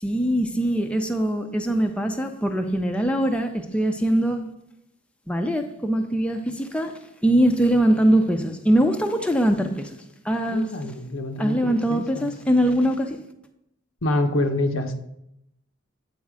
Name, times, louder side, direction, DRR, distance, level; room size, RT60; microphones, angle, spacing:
voice 1, 0.0-4.4 5.3-6.9 7.2-10.0 10.2-10.7 11.4-13.2, right 1 dB, 5° left, 5 dB, 0.5 m, -22 dB
voice 2, 10.5-12.3 14.0-15.0, left 1 dB, 85° left, 6 dB, 0.8 m, -26 dB
8.4 x 4.1 x 4.8 m, 0.81 s
head